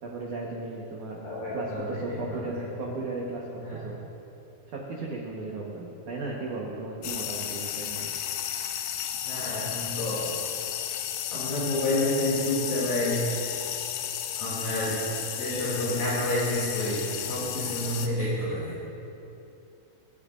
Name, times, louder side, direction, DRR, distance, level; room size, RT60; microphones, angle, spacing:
voice 1, 0.0-1.2 1.5-4.0 4.7-8.1 8.5-8.6, right 3 dB, 85° right, -3 dB, 1.7 m, -35 dB
voice 2, 1.2-2.5 3.6-3.8 9.2-10.2 11.3-13.2 14.4-15.0 15.4-18.8, left 1 dB, 50° left, -8 dB, 3.8 m, -29 dB
sound 1, 7.0-18.1, left 10 dB, 80° left, 2.9 m, -33 dB
25.0 x 11.0 x 2.6 m, 2.8 s
omnidirectional pair, 5.6 m